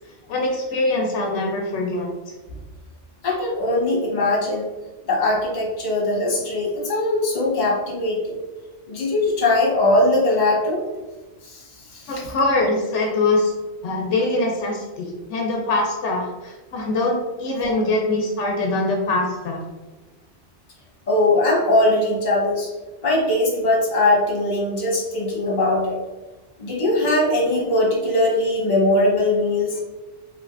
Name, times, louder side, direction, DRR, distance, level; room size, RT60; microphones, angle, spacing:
voice 1, 0.3-2.1 12.1-13.5 13.8-19.6, left 2 dB, 80° left, 0 dB, 0.9 m, -23 dB
voice 2, 3.2-4.7 5.1-8.4 8.9-10.8 11.4-11.6 11.9-12.3 17.7-17.8 21.1-22.7 23.0-26.0 26.6-29.8, left 2 dB, 45° left, -3 dB, 1.0 m, -20 dB
3.4 x 3.1 x 2.5 m, 1.2 s
omnidirectional pair, 1.2 m